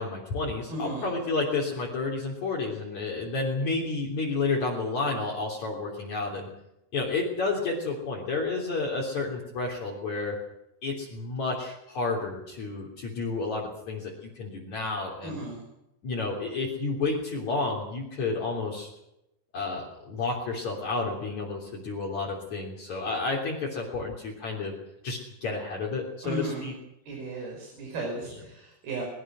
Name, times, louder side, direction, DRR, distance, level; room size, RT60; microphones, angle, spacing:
voice 1, 0.0-6.5 6.9-10.4 10.8-15.4 16.0-18.9 19.5-24.7 25.0-26.7, left 3 dB, 45° left, -3 dB, 4.4 m, -31 dB
voice 2, 0.7-1.1 15.2-15.6 26.2-26.7 27.1-29.0, right 2 dB, 60° right, 1 dB, 7.3 m, -35 dB
23.0 x 21.0 x 6.3 m, 0.86 s
omnidirectional pair, 4.9 m